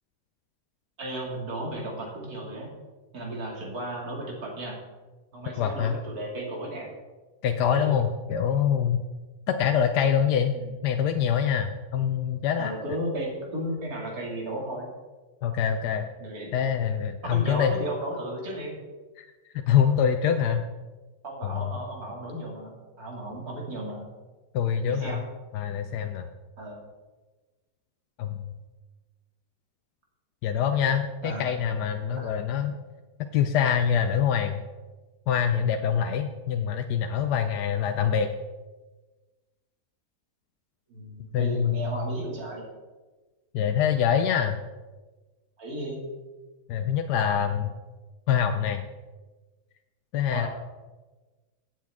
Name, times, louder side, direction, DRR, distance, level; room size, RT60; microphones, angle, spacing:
voice 1, 1.0-2.7 3.1-4.8 5.3-6.9 7.7-7.9 10.5-10.7 12.6-14.9 16.2-16.5 17.2-18.7 21.2-24.1 24.9-25.2 26.6-26.8 31.2-31.5 32.2-32.4 40.9-42.7 45.6-46.0 50.3-50.5, right 1 dB, 65° right, -2 dB, 2.9 m, -34 dB
voice 2, 5.6-6.0 7.4-9.0 9.5-10.6 10.8-12.7 15.4-16.1 16.5-17.8 19.2-19.3 19.5-20.6 21.4-21.7 24.5-25.2 25.5-26.3 28.2-28.5 30.4-32.7 33.3-34.6 35.3-38.3 41.3-41.9 43.5-44.6 46.7-47.7 48.3-48.9 50.1-50.5, left 8 dB, 90° left, 6 dB, 1.2 m, -25 dB
16.0 x 7.5 x 3.6 m, 1.2 s
omnidirectional pair, 1.7 m